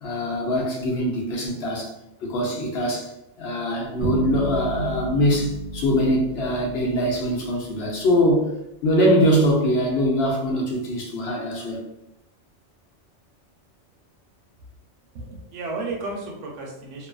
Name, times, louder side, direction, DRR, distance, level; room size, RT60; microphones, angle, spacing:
voice 1, 0.0-1.9 2.2-3.1 3.4-8.4 8.8-11.8, equal, 65° left, -2 dB, 0.9 m, -22 dB
sound 1, 4.0-7.7, right 2 dB, 55° right, 0.4 m, -31 dB
voice 2, 15.1-17.1, right 3 dB, 90° right, -1 dB, 1.0 m, -33 dB
2.7 x 2.4 x 2.3 m, 0.86 s
omnidirectional pair, 1.2 m